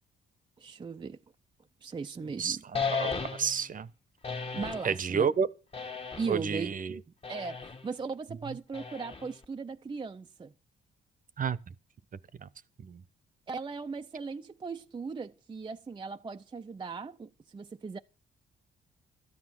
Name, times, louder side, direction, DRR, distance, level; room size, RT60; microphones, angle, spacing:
voice 1, 0.6-1.2 1.8-2.6 4.5-5.3 6.2-6.7 7.3-10.5 13.5-18.0, right 4 dB, 25° right, 0.6 m, -38 dB
voice 2, 2.4-3.9 4.8-5.5 6.3-7.0 11.4-11.6 12.4-12.5 12.8-13.0, right 6 dB, 45° right, 0.9 m, -30 dB
sound 1, 2.7-3.7 4.2-4.9 5.7-6.5 7.2-7.8 8.7-9.4, left 5 dB, 30° left, 1.5 m, -35 dB
13.0 x 9.7 x 6.0 m
cardioid pair, 90°, 20 cm